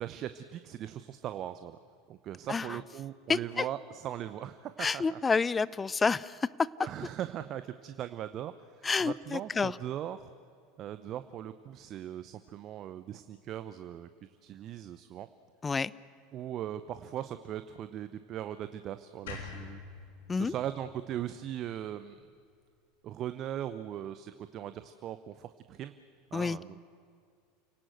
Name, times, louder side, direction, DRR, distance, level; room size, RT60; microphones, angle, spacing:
voice 1, 0.0-1.8 2.1-5.2 6.8-10.3 10.8-14.1 14.4-15.3 16.3-19.8 20.3-22.2 23.0-25.9 26.3-26.9, right 11 dB, 45° right, 11 dB, 0.8 m, -39 dB
voice 2, 2.5-2.8 3.3-3.7 4.8-6.7 8.8-9.8 15.6-15.9 20.3-20.5 26.3-26.6, left 4 dB, 20° left, 21 dB, 0.6 m, -29 dB
sound 1, 19.3-22.4, left 5 dB, 70° left, 3.6 m, -46 dB
29.5 x 18.0 x 7.9 m, 2.2 s
hypercardioid pair, 80°, 0 cm